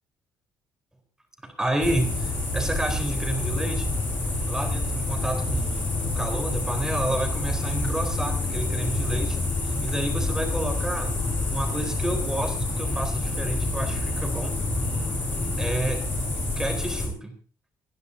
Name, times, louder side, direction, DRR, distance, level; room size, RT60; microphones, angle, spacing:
voice 1, 1.4-3.9 4.5-9.4 9.8-11.1 11.5-14.5 15.6-16.1 16.6-17.4, right 1 dB, 10° right, 4 dB, 3.9 m, -30 dB
sound 1, 1.8-17.1, left 2 dB, 25° left, 7.2 m, -27 dB
29.5 x 11.5 x 2.7 m, 0.37 s
cardioid pair, 125°, 7 cm